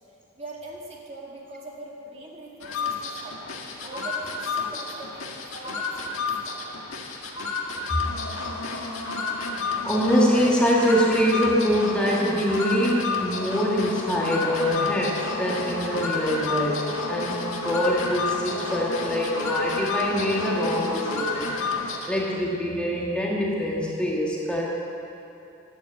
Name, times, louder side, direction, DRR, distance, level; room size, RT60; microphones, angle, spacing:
voice 1, 0.4-6.7, right 2 dB, 30° right, -2 dB, 2.0 m, -42 dB
sound 1, 2.6-22.3, left 3 dB, 90° left, 1.7 m, -30 dB
voice 2, 9.8-21.5 22.1-24.6, equal, 5° left, -4 dB, 1.7 m, -24 dB
12.5 x 10.5 x 8.1 m, 2.8 s
head